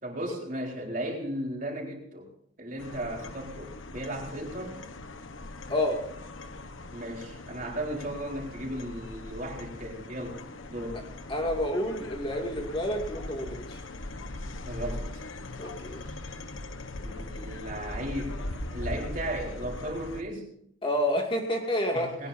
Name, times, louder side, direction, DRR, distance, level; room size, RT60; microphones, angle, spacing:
voice 1, 0.0-2.3 2.6-4.8 6.9-10.4 10.7-11.0 14.7-15.1 17.0-18.4 18.7-20.5 21.9-22.3, right 1 dB, 40° right, -1 dB, 4.1 m, -35 dB
sound 1, 2.8-20.2, left 2 dB, 80° left, 1.2 m, -40 dB
voice 2, 11.3-13.8 15.6-16.0 20.8-22.1, left 1 dB, 25° left, 1 dB, 2.4 m, -29 dB
20.0 x 19.0 x 2.8 m, 0.71 s
head